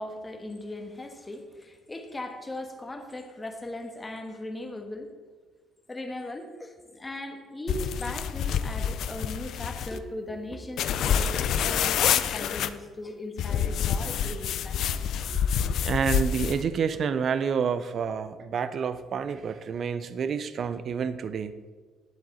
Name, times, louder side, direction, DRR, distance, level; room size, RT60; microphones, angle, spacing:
voice 1, 0.0-5.1 5.9-15.4, left 1 dB, 15° left, 4 dB, 1.3 m, -38 dB
sound 1, 7.7-10.0 10.8-12.7 13.4-16.6, left 8 dB, 65° left, 0.4 m, -27 dB
voice 2, 15.8-21.6, right 6 dB, 50° right, 13 dB, 0.5 m, -29 dB
10.5 x 7.7 x 4.2 m, 1.4 s
cardioid pair, 100°, 0 cm